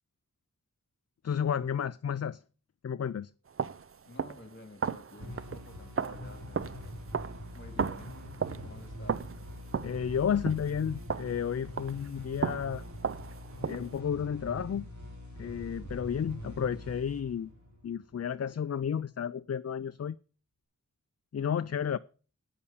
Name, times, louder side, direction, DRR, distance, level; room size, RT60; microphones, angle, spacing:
voice 1, 1.2-2.4 2.8-3.3 9.8-12.8 13.6-14.9 15.4-17.5 17.8-20.2 21.3-22.0, left 8 dB, 50° left, 0.4 m, -32 dB
sound 1, 3.5-12.1 12.4-14.0, right 6 dB, 45° right, 0.5 m, -36 dB
voice 2, 4.0-6.8 7.5-8.1 8.5-9.3, left 1 dB, 35° left, 2.3 m, -51 dB
sound 2, 5.2-18.5, equal, 65° right, 3.9 m, -44 dB
9.5 x 7.1 x 7.1 m
wide cardioid pair, 60°, 31 cm